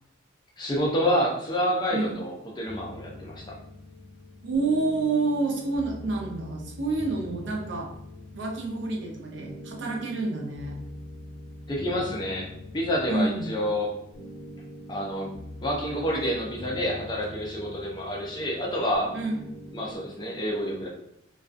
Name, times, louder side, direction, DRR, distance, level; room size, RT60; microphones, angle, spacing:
voice 1, 0.6-3.5 11.7-13.9 14.9-15.3 15.6-19.1 19.7-20.9, equal, 20° left, -2 dB, 0.4 m, -28 dB
sound 1, 2.6-20.0, left 1 dB, 75° left, 0.9 m, -43 dB
voice 2, 4.4-7.9 8.3-10.8 13.1-13.5 19.1-19.4, right 3 dB, 65° right, 0 dB, 0.5 m, -28 dB
2.4 x 2.2 x 2.4 m, 0.77 s
head